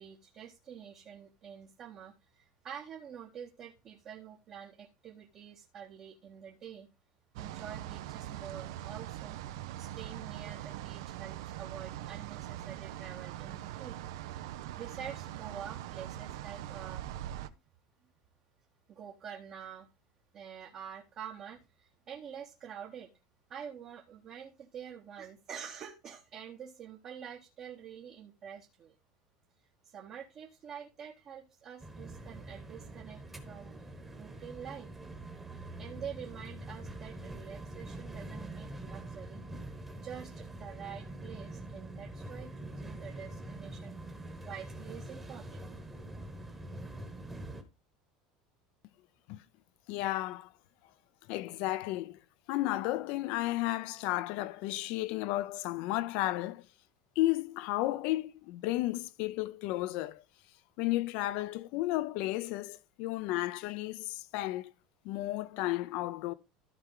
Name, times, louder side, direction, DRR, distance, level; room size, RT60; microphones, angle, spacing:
voice 1, 0.0-6.9 7.3-9.4 9.7-14.0 14.8-17.1 18.9-19.9 20.3-23.1 23.5-28.9 29.8-33.7 34.2-34.9 35.5-39.4 40.0-44.0 44.4-45.7, right 8 dB, 30° right, 0.9 m, -47 dB
sound 1, 7.4-17.5, right 13 dB, 85° right, 0.6 m, -42 dB
sound 2, 31.8-47.6, right 1 dB, 10° right, 1.1 m, -44 dB
voice 2, 49.9-50.5 51.3-52.2 52.5-56.6 57.2-60.2 60.8-64.7 65.0-66.3, left 17 dB, 55° left, 0.5 m, -33 dB
13.5 x 4.7 x 3.7 m
cardioid pair, 165°, 2 cm